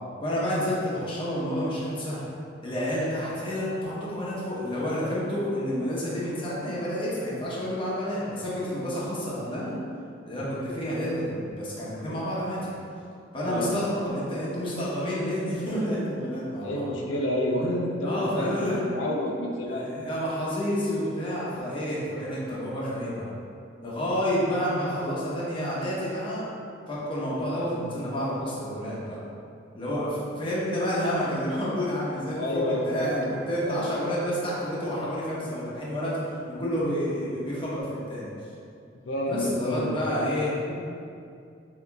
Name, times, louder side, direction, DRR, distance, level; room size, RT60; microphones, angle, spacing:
voice 1, 0.2-2.2 2.6-9.8 10.2-12.7 13.3-16.8 17.6-17.7 18.0-18.8 19.6-23.3 23.8-26.5 26.9-29.2 29.7-36.2 36.5-37.8 38.1-38.3 39.3-40.5, equal, 30° left, -7 dB, 1.0 m, -29 dB
voice 2, 16.6-20.1 32.4-33.9 39.1-40.3, left 1 dB, 80° left, -1 dB, 0.6 m, -29 dB
6.9 x 2.8 x 2.3 m, 2.4 s
head